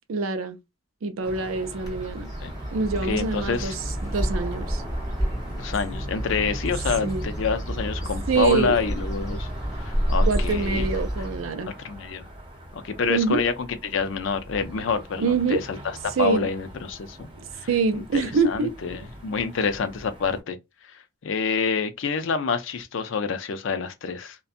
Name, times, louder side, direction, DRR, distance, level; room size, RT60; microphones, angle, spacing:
voice 1, 0.1-0.6 1.0-2.3 2.7-4.8 7.0-7.2 8.3-8.8 10.3-11.7 13.1-13.4 15.2-15.6 16.2-16.5 17.4-18.7, right 4 dB, 80° right, 0.4 m, -25 dB
sound 1, 1.2-20.4, equal, 25° right, 0.7 m, -41 dB
Bird, 1.8-11.5, equal, 20° left, 1.2 m, -29 dB
voice 2, 3.0-3.8 5.5-9.5 9.9-10.9 11.8-12.3 12.7-15.8 16.2-17.3 17.9-20.6 21.2-24.4, left 5 dB, 65° left, 0.4 m, -27 dB
2.6 x 2.2 x 2.4 m
head